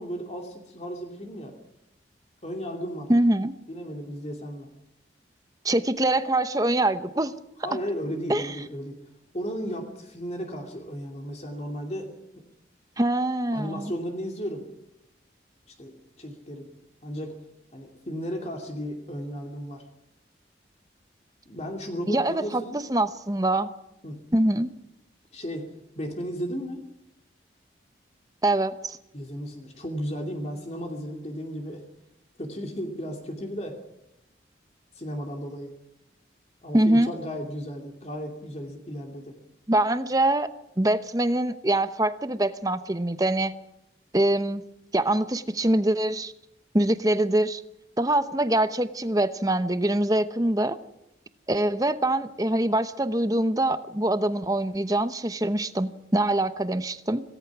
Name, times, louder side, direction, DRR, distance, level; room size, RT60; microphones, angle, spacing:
voice 1, 0.0-1.5 2.4-3.1 3.7-4.7 7.6-9.0 9.3-12.1 13.5-14.7 15.7-16.7 17.0-17.4 17.7-19.9 21.5-22.8 24.0-24.2 25.3-25.7 25.9-26.8 29.1-31.8 32.4-33.8 34.9-35.7 36.6-39.4, equal, 35° left, 2 dB, 2.7 m, -34 dB
voice 2, 3.1-3.5 5.6-7.3 8.3-8.5 13.0-13.9 22.1-23.7 24.3-24.7 28.4-29.0 36.7-37.1 39.7-40.5 40.8-43.5 44.1-44.6 44.9-46.3 46.7-47.6 48.0-50.8 51.5-57.2, right 1 dB, 20° right, 12 dB, 0.9 m, -24 dB
26.5 x 18.0 x 6.2 m, 0.85 s
head